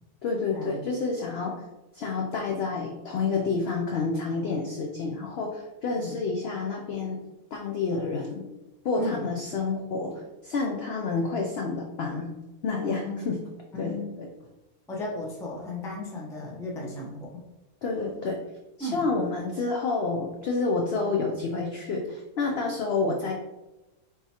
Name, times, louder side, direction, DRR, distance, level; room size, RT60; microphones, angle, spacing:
voice 1, 0.2-1.5 1.9-7.2 7.5-8.5 8.8-12.3 12.6-13.4 13.8-14.3 17.8-18.4 18.8-23.3, left 4 dB, 70° left, 1 dB, 0.6 m, -29 dB
voice 2, 9.0-9.3 12.8-13.2 13.7-14.1 14.9-17.3 18.8-19.1, left 1 dB, 5° left, -3 dB, 0.4 m, -35 dB
4.3 x 3.7 x 2.8 m, 1.0 s
omnidirectional pair, 1.6 m